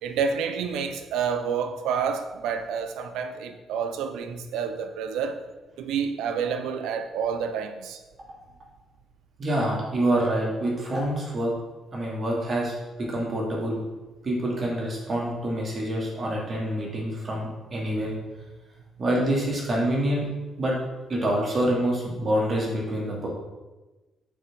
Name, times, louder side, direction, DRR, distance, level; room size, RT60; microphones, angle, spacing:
voice 1, 0.0-5.4 5.8-8.0, right 6 dB, 90° right, 0.6 m, -29 dB
voice 2, 9.4-11.5 11.9-12.7 13.0-13.8 14.2-18.1 19.0-20.3 20.6-20.7 21.1-23.3, right 1 dB, 45° right, 2.3 m, -26 dB
6.2 x 4.5 x 5.2 m
cardioid pair, 90°, 0 cm